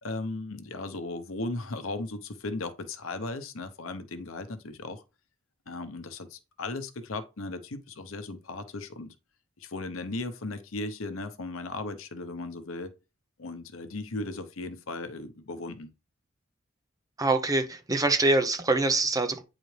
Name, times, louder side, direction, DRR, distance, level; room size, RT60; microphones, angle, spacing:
voice 1, 0.0-5.0 5.7-9.1 9.6-12.9 13.4-15.9, left 2 dB, 80° left, 0.9 m, -36 dB
voice 2, 17.2-19.4, right 2 dB, 15° right, 0.7 m, -24 dB
9.1 x 4.0 x 3.3 m
head